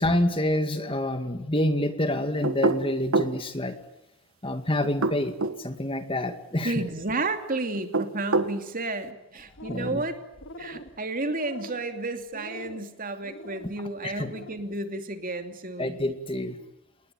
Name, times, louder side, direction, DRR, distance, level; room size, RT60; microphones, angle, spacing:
voice 1, 0.0-3.7 4.4-5.3 5.6-6.7 9.7-10.0 14.0-14.3 15.8-16.6, left 1 dB, 25° left, 8 dB, 2.1 m, -27 dB
sound 1, 2.4-3.4 4.8-5.6 7.7-8.6, right 3 dB, 70° right, 1.7 m, -25 dB
voice 2, 6.6-10.2 10.6-16.0, right 2 dB, 40° right, 7 dB, 2.8 m, -32 dB
sound 2, 9.4-10.1 10.3-10.9 11.3-11.9 12.3-12.8 13.2-13.7 14.1-14.6, left 1 dB, 60° left, 2.4 m, -43 dB
29.5 x 20.5 x 9.2 m, 0.89 s
head